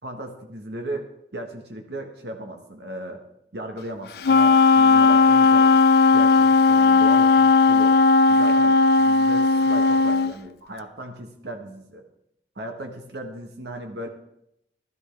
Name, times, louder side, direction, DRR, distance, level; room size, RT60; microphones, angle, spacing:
voice 1, 0.0-3.2 3.5-5.7 6.1-8.0 8.3-12.0 12.5-14.1, right 1 dB, 70° right, 4 dB, 1.2 m, -36 dB
Wind instrument woodwind instrument, 4.2-10.3, left 4 dB, 60° left, 0.4 m, -16 dB
15.0 x 12.5 x 3.3 m, 0.80 s
head